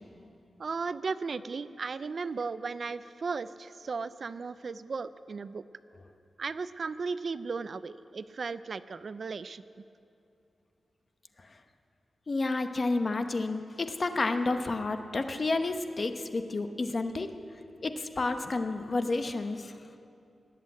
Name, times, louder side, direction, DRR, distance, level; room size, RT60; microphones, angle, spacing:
voice 1, 0.6-5.6 6.4-9.6, right 4 dB, 50° right, 14 dB, 0.4 m, -36 dB
voice 2, 12.3-17.3 17.8-19.7, left 3 dB, 35° left, 7 dB, 0.9 m, -30 dB
19.5 x 8.3 x 8.5 m, 2.7 s
wide cardioid pair, 135°, 0 cm